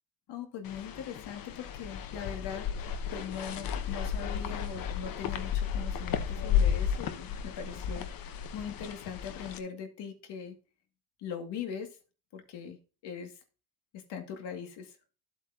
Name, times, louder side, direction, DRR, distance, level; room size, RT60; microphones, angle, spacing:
voice 1, 0.3-2.7 3.1-8.1 8.5-10.6 11.2-12.0 12.3-12.8 13.0-13.4 13.9-15.0, left 7 dB, 80° left, 5 dB, 2.3 m, -41 dB
sound 1, 0.6-9.6, left 8 dB, 55° left, 1.0 m, -33 dB
12.0 x 8.1 x 2.8 m, 0.34 s
cardioid pair, 165°, 40 cm